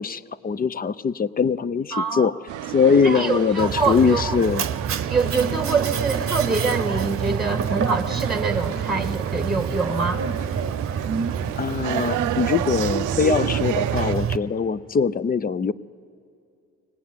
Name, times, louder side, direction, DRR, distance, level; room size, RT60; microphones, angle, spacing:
voice 1, 0.0-2.3 2.7-4.7 11.6-15.7, left 6 dB, 30° left, 16 dB, 0.5 m, -22 dB
voice 2, 1.9-2.3 3.0-4.4 5.1-10.2, right 3 dB, ahead, 6 dB, 1.3 m, -25 dB
sound 1, 2.5-14.2, right 14 dB, 85° right, 0.5 m, -32 dB
Mechanisms, 3.6-14.4, right 7 dB, 45° right, 0.8 m, -27 dB
24.0 x 18.0 x 9.6 m, 2.5 s
cardioid pair, 90°, 30 cm